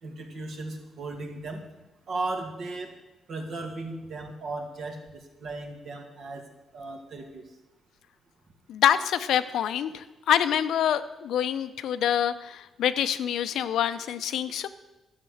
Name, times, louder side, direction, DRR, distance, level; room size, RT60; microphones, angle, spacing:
voice 1, 0.0-1.6 2.1-2.9 3.3-6.4 6.7-7.5, right 2 dB, 55° right, 3 dB, 2.1 m, -36 dB
voice 2, 8.7-14.7, left 10 dB, 85° left, 12 dB, 0.6 m, -26 dB
12.5 x 6.6 x 7.9 m, 1.0 s
cardioid pair, 145°, 0 cm